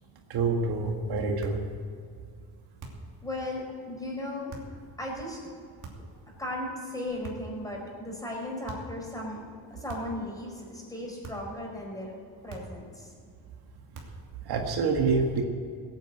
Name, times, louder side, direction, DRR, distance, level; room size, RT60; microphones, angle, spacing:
voice 1, 0.3-1.6 14.5-15.4, right 4 dB, 70° right, 2 dB, 1.8 m, -26 dB
sound 1, 1.4-1.7 2.8-3.2 4.5-4.8 5.8-6.2 7.2-7.6 8.7-9.0 9.9-10.3 11.2-11.6 12.5-12.9 13.9-14.3, right 3 dB, 50° right, 2.8 m, -43 dB
voice 2, 3.2-4.7 5.0-5.6 6.4-9.4 9.7-12.1 12.4-13.1, left 1 dB, 10° left, -2 dB, 4.9 m, -36 dB
17.0 x 9.2 x 8.0 m, 2.2 s
cardioid pair, 115°, 39 cm